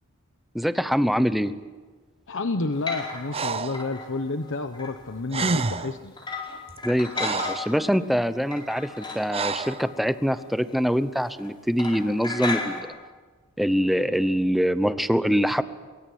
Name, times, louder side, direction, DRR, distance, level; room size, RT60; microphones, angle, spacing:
voice 1, 0.5-1.5 6.8-12.9 13.6-15.6, equal, ahead, 12 dB, 0.9 m, -24 dB
voice 2, 2.3-6.1, left 3 dB, 60° left, 8 dB, 1.1 m, -30 dB
sound 1, 2.7-3.5 3.7-5.1 5.5-5.6 6.2-7.9 8.3-10.6 10.9-11.1 11.3-11.5 11.8-12.8, left 3 dB, 20° left, 4.7 m, -35 dB
Breathing, 3.3-3.8 5.0-5.1 5.3-6.0 6.7-7.7 9.3-9.8, right 4 dB, 25° right, 0.7 m, -28 dB
24.0 x 23.5 x 8.6 m, 1.4 s
head